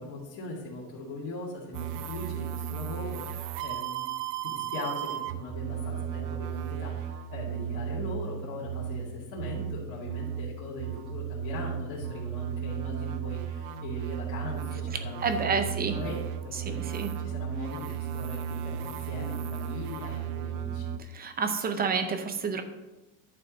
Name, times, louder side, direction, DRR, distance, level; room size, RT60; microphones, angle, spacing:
voice 1, 0.0-4.1 4.4-16.8 17.2-20.9, left 2 dB, 45° left, -8 dB, 2.3 m, -40 dB
sound 1, 1.7-21.0, right 9 dB, 60° right, 0.6 m, -35 dB
voice 2, 15.2-16.0 16.6-17.2 21.1-22.6, right 5 dB, 20° right, 8 dB, 0.6 m, -29 dB
11.0 x 4.5 x 5.1 m, 1.0 s
cardioid pair, 160°, 44 cm